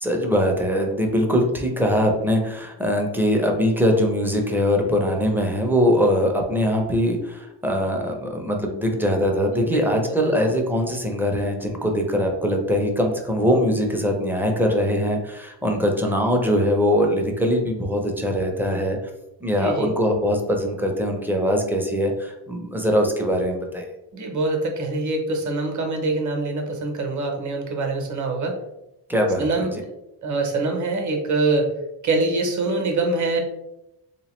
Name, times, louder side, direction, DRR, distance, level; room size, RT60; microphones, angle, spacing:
voice 1, 0.0-19.0 19.4-23.9 29.1-29.8, equal, 5° right, 1 dB, 0.4 m, -22 dB
voice 2, 9.5-10.4 19.5-19.9 24.1-28.6 29.4-29.9 30.2-31.7 32.0-33.4, right 3 dB, 40° right, 3 dB, 0.8 m, -24 dB
3.5 x 2.9 x 3.0 m, 0.88 s
wide cardioid pair, 130°, 48 cm